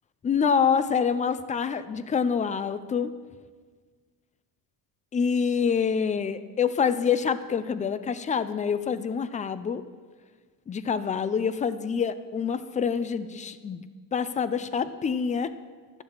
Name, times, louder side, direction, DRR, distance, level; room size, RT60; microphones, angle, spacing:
voice 1, 0.2-3.1 5.1-9.8 10.7-13.8 14.1-15.5, left 6 dB, 20° left, 13 dB, 0.3 m, -26 dB
12.0 x 7.1 x 4.7 m, 1.5 s
cardioid pair, 110°, 42 cm